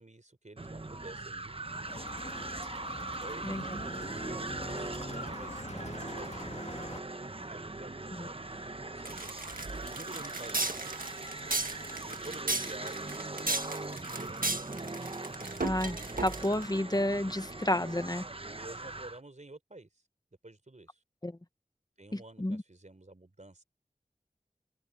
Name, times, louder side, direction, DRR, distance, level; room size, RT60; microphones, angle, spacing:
voice 1, 0.0-1.6 3.2-4.4 4.7-6.7 7.3-9.5 9.9-10.8 12.1-14.9 18.6-19.9 20.4-21.0 22.0-23.6, right 2 dB, 60° right, 3.9 m, -50 dB
sound 1, 0.6-19.2, right 2 dB, 40° right, 0.9 m, -40 dB
sound 2, 1.9-7.0, left 2 dB, 50° left, 1.8 m, -45 dB
sound 3, 9.0-16.7, right 2 dB, 80° right, 1.7 m, -35 dB
voice 2, 15.6-18.3 21.2-21.3 22.1-22.6, left 1 dB, 30° left, 1.3 m, -31 dB
wide cardioid pair, 40°, 14 cm